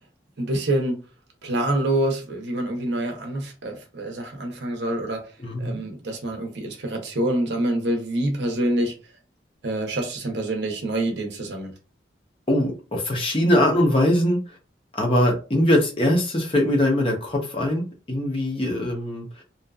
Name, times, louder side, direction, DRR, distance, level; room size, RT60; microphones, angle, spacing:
voice 1, 0.4-1.0 1.4-5.2 5.6-8.9 9.6-11.7, right 1 dB, 75° right, 0.7 m, -26 dB
voice 2, 5.4-5.8 12.5-14.4 14.9-19.2, left 1 dB, 30° left, 0.7 m, -22 dB
2.6 x 2.4 x 2.3 m
head